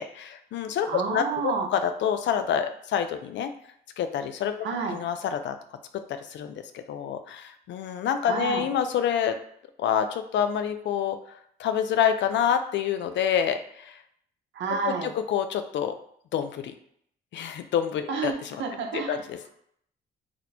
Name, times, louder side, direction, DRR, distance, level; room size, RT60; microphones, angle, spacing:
voice 1, 0.0-3.5 4.0-4.5 4.9-5.6 5.9-9.4 9.8-11.2 11.6-14.0 14.8-15.9 16.3-16.7 17.3-18.3 18.9-19.5, left 8 dB, 65° left, 9 dB, 0.4 m, -27 dB
voice 2, 0.9-1.7 4.6-5.0 8.3-8.7 14.5-15.1 18.1-18.3 18.6-19.2, right 5 dB, 70° right, 2 dB, 0.8 m, -29 dB
2.9 x 2.1 x 4.1 m, 0.68 s
cardioid pair, 90°, 20 cm